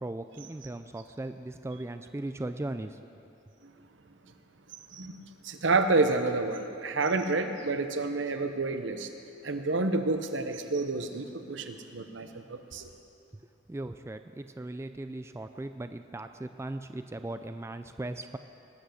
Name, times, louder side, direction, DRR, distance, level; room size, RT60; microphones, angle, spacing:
voice 1, 0.0-3.0 13.7-18.4, right 2 dB, 15° right, 9 dB, 0.3 m, -38 dB
voice 2, 4.9-9.1 9.4-12.9, right 3 dB, 75° right, 7 dB, 0.9 m, -29 dB
19.5 x 8.3 x 6.4 m, 2.7 s
head